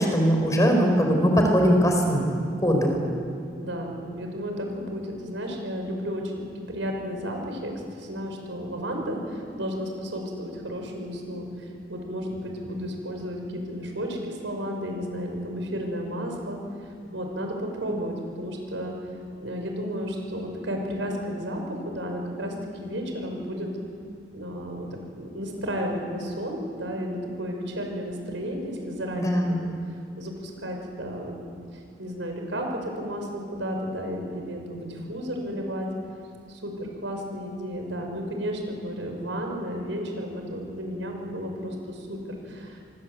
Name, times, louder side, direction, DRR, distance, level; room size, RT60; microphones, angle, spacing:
voice 1, 0.0-2.3 2.6-3.1 29.2-29.6, equal, 20° left, 2 dB, 4.7 m, -21 dB
voice 2, 3.5-19.0 19.4-23.7 24.3-29.7 30.2-35.9 36.5-42.8, equal, 85° right, 3 dB, 6.0 m, -33 dB
26.5 x 24.5 x 8.3 m, 2.3 s
head